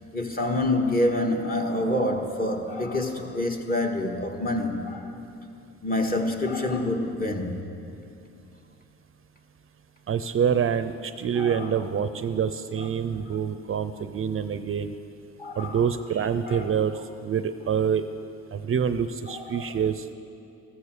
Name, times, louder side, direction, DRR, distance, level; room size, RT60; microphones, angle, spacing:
voice 1, 0.1-5.1 5.8-7.6 11.4-11.7 15.4-15.8 16.4-16.6 19.5-19.7, left 1 dB, 30° left, 1.9 m, -27 dB
voice 2, 10.1-14.9 15.6-18.0 18.5-20.1, right 7 dB, 45° right, 0.6 m, -26 dB
14.5 x 14.0 x 6.7 m
cardioid pair, 90°, 30 cm